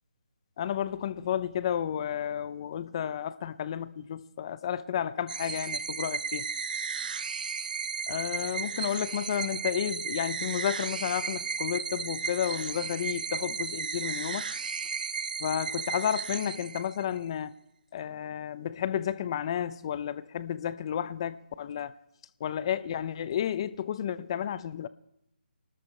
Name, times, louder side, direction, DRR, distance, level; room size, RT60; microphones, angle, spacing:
voice 1, 0.6-6.5 8.1-14.5 15.4-17.5 17.9-21.9 22.4-24.9, left 9 dB, 30° left, 0.6 m, -32 dB
sound 1, 5.3-17.2, right 6 dB, 50° right, 0.6 m, -34 dB
26.0 x 13.0 x 3.3 m
hypercardioid pair, 160°, 6 cm